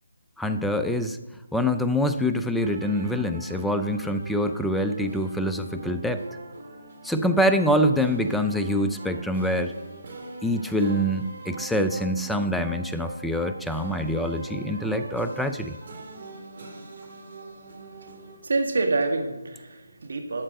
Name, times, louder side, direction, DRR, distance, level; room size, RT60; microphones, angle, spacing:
voice 1, 0.4-1.2 1.5-6.2 7.0-9.7 10.4-15.8, equal, ahead, 7 dB, 0.3 m, -25 dB
sound 1, 2.6-18.4, right 2 dB, 45° right, 1.9 m, -41 dB
voice 2, 18.4-20.4, right 3 dB, 65° right, 5 dB, 1.6 m, -27 dB
12.0 x 4.4 x 6.5 m, 1.1 s
figure-of-eight pair, 160°, 0 cm